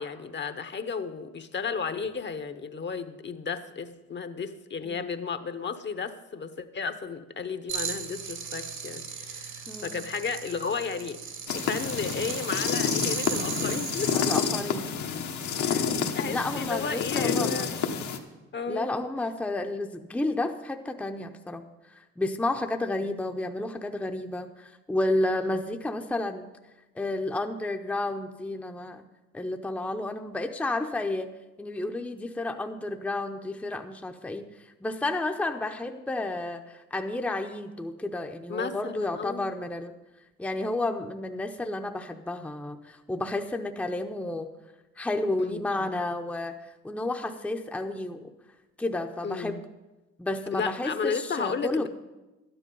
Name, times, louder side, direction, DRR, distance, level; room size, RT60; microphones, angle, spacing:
voice 1, 0.0-11.2 11.5-14.2 15.6-17.8 18.5-18.9 25.3-25.6 38.5-39.5 45.4-45.9 49.2-49.6 50.5-51.9, left 5 dB, 35° left, 10 dB, 0.8 m, -34 dB
sound 1, 7.7-14.5, right 6 dB, 70° right, 1.7 m, -36 dB
sound 2, 11.5-18.2, left 6 dB, 75° left, 1.2 m, -29 dB
voice 2, 14.1-14.9 16.3-17.7 18.7-21.6 21.9-26.5 27.0-29.0 29.3-31.3 31.6-34.5 34.8-39.9 40.4-44.5 45.0-46.6 46.8-48.2 48.8-49.6 50.2-51.9, left 2 dB, 5° left, 4 dB, 0.6 m, -31 dB
12.0 x 10.0 x 5.4 m, 1.1 s
cardioid pair, 90°, 30 cm